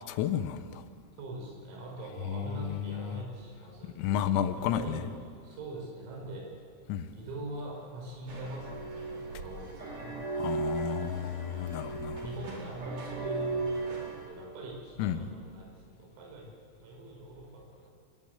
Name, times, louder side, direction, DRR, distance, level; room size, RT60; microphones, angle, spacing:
voice 1, 0.1-0.8 2.3-3.2 4.0-5.0 6.9-7.1 10.4-12.3 15.0-15.3, left 10 dB, 85° left, 11 dB, 3.7 m, -32 dB
voice 2, 1.2-3.9 4.6-5.2 5.4-6.5 7.1-10.2 10.9-11.5 12.2-15.7 16.0-16.5 16.8-17.9, right 2 dB, 80° right, -1 dB, 8.0 m, -42 dB
sound 1, 8.3-14.2, right 3 dB, 40° right, 5.3 m, -36 dB
27.5 x 21.0 x 8.0 m, 2.1 s
omnidirectional pair, 5.9 m